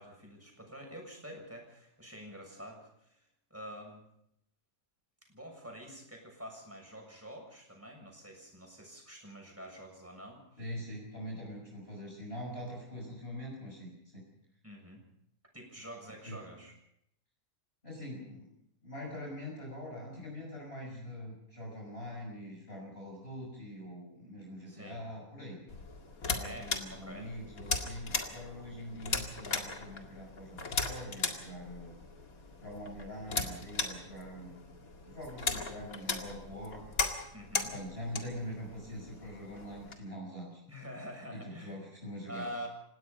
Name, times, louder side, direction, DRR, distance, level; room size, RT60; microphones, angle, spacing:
voice 1, 0.0-4.0 5.3-10.7 14.6-15.0 15.5-16.7 24.7-25.0 26.4-27.3 37.3-37.8 40.7-41.8 42.3-42.7, equal, 10° right, 1 dB, 7.1 m, -47 dB
voice 2, 10.6-14.2 16.3-16.4 17.8-18.5 18.8-25.6 26.2-31.9 32.6-34.6 35.0-36.8 37.7-40.6 41.3-42.5, equal, 45° left, -1 dB, 6.1 m, -43 dB
sound 1, 25.7-39.9, left 3 dB, 85° left, 2.6 m, -38 dB
29.5 x 17.0 x 5.4 m, 0.76 s
omnidirectional pair, 1.5 m